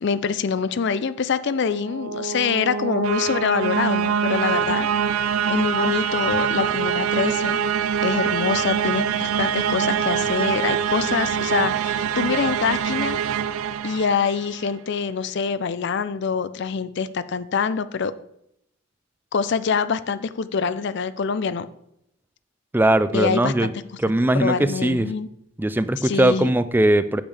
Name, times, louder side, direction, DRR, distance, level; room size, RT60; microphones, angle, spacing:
voice 1, 0.0-4.9 5.5-7.6 8.0-13.2 13.8-18.1 19.3-21.7 23.1-23.7 24.3-25.3 26.0-26.5, left 6 dB, 55° left, 14 dB, 0.4 m, -25 dB
sound 1, 1.6-14.6, right 7 dB, 80° right, 0.4 m, -24 dB
voice 2, 22.7-23.7 24.0-25.1 25.6-27.2, right 1 dB, 10° right, 14 dB, 0.3 m, -20 dB
8.6 x 8.1 x 3.4 m, 0.76 s
head